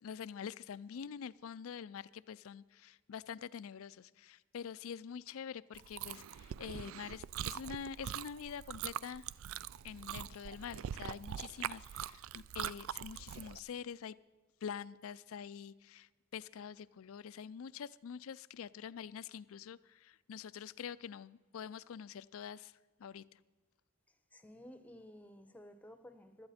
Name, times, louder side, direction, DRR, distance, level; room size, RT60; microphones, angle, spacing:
voice 1, 0.0-9.2 9.8-14.1 14.6-23.4, left 7 dB, 70° left, 18 dB, 0.4 m, -46 dB
Chewing mastication, 5.7-13.6, right 10 dB, 65° right, 0.3 m, -43 dB
voice 2, 24.3-26.5, equal, 5° left, 10 dB, 0.8 m, -54 dB
16.5 x 12.5 x 4.2 m, 1.3 s
head